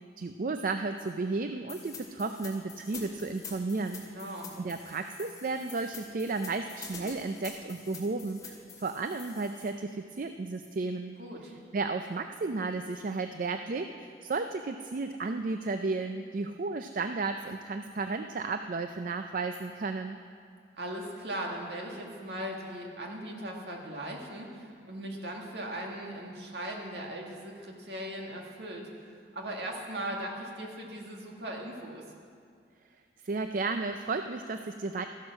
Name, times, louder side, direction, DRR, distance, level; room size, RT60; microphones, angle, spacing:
voice 1, 0.2-4.0 4.3-11.2 11.4-20.2 33.2-35.1, right 3 dB, 50° right, 7 dB, 0.4 m, -33 dB
sound 1, 1.7-9.7, left 5 dB, 20° left, 2.5 m, -47 dB
voice 2, 4.0-4.5 11.2-11.5 20.8-28.9 29.3-32.0, right 1 dB, 65° right, 0 dB, 2.1 m, -38 dB
14.5 x 11.0 x 6.2 m, 2.2 s
head